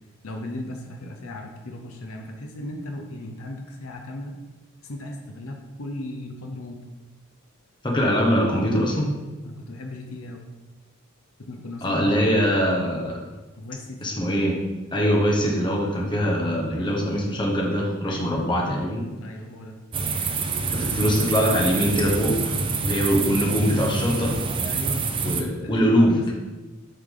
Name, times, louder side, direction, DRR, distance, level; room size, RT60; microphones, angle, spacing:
voice 1, 0.2-4.3 4.8-6.8 9.4-10.5 11.4-12.2 13.6-14.0 16.7-17.0 18.0-18.8 19.2-19.7 24.6-26.3, left 1 dB, 80° left, 3 dB, 0.7 m, -37 dB
voice 2, 7.8-9.2 11.8-13.2 14.0-14.6 14.9-19.1 20.7-22.6 22.8-24.5 25.2-26.2, equal, 20° left, -2 dB, 1.1 m, -22 dB
sound 1, 19.9-25.4, right 4 dB, 25° right, 0.4 m, -26 dB
8.0 x 3.4 x 3.8 m, 1.2 s
head